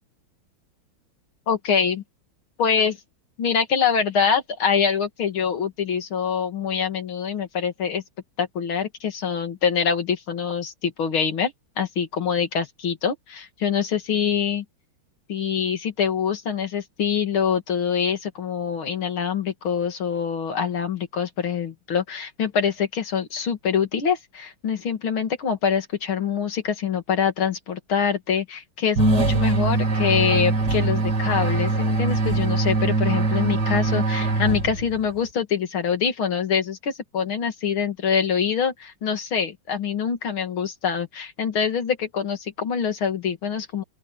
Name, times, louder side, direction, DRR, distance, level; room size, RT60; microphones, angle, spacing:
voice 1, 1.5-2.0 2.6-3.0 3.4-8.0 8.4-14.6 15.3-43.8, left 7 dB, 75° left, 3.1 m, -25 dB
sound 1, 29.0-35.1, right 3 dB, 50° right, 3.8 m, -22 dB
open air
omnidirectional pair, 2.3 m